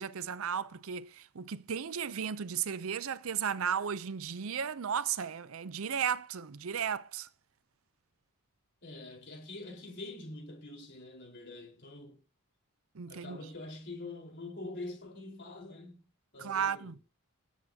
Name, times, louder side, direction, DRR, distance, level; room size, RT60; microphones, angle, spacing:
voice 1, 0.0-7.3 12.9-13.4 16.4-16.9, right 7 dB, 65° right, 0.6 m, -34 dB
voice 2, 8.8-12.2 13.1-16.1 16.3-16.9, left 2 dB, 55° left, 4.4 m, -45 dB
19.5 x 9.2 x 2.8 m
head